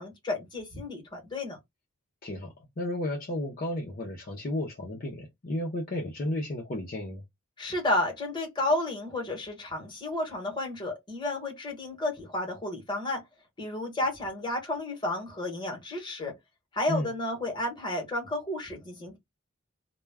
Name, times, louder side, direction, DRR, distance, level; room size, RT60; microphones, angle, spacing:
voice 1, 0.0-1.6 7.6-13.2 13.6-16.3 16.7-19.2, left 2 dB, 20° left, 1.0 m, -32 dB
voice 2, 2.2-7.2 16.9-17.1, left 1 dB, 45° left, 0.5 m, -33 dB
2.2 x 2.2 x 3.3 m
head